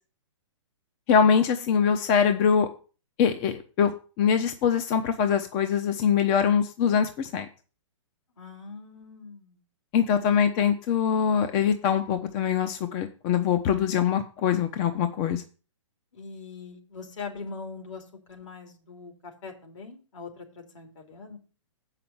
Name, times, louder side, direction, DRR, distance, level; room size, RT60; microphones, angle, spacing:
voice 1, 1.1-2.7 3.2-7.5 9.9-15.4, left 7 dB, 30° left, 8 dB, 0.7 m, -23 dB
voice 2, 8.4-9.6 10.1-10.4 16.1-18.0 18.3-21.4, left 4 dB, 70° left, 3 dB, 3.2 m, -42 dB
7.7 x 5.8 x 7.0 m, 0.36 s
hypercardioid pair, 145°, 16 cm